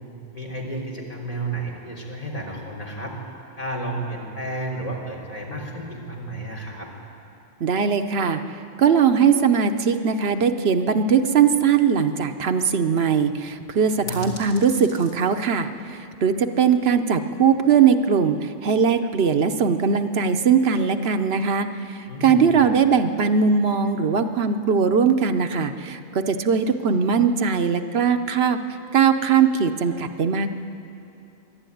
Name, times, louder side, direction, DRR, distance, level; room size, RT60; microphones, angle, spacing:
voice 1, 0.3-3.2 3.6-6.9 13.8-14.3 22.1-22.5, right 1 dB, 35° left, -2 dB, 3.5 m, -32 dB
voice 2, 7.6-8.4 8.8-28.6 28.9-30.5, right 6 dB, 75° right, 8 dB, 1.1 m, -20 dB
sound 1, 13.1-18.4, left 1 dB, 70° left, 2.9 m, -46 dB
25.5 x 11.5 x 9.2 m, 2.8 s
omnidirectional pair, 1.1 m